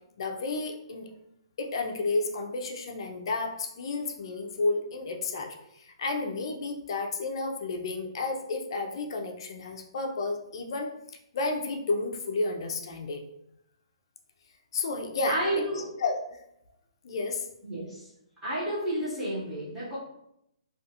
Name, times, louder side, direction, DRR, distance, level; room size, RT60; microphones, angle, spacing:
voice 1, 0.2-1.1 1.6-10.9 11.3-13.2 14.7-16.2 17.0-17.4, left 3 dB, 55° left, 3 dB, 0.4 m, -31 dB
voice 2, 15.3-15.9 17.6-18.1 18.4-20.0, right 1 dB, 5° right, -12 dB, 0.9 m, -31 dB
2.3 x 2.3 x 2.8 m, 0.79 s
hypercardioid pair, 160°, 3 cm